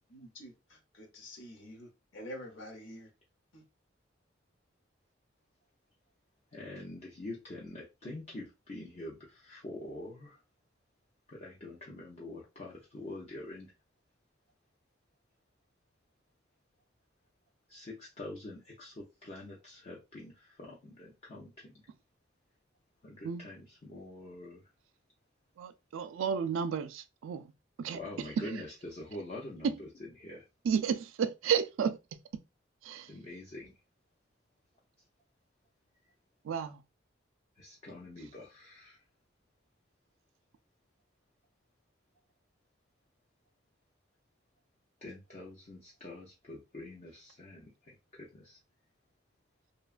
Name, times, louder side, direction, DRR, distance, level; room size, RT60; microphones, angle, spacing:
voice 1, 0.1-3.1 3.5-3.6, equal, 75° left, 0.8 m, -47 dB
voice 2, 6.5-10.4 11.3-13.7 17.7-21.7 23.0-24.6 27.9-29.9 30.2-30.4 33.1-33.7 37.6-39.0 45.0-48.6, left 1 dB, 35° left, 0.5 m, -45 dB
voice 3, 25.6-27.4 27.8-28.0 30.6-32.0 32.9-33.1 36.5-36.8, right 7 dB, 80° right, 0.3 m, -32 dB
2.7 x 2.2 x 2.4 m
head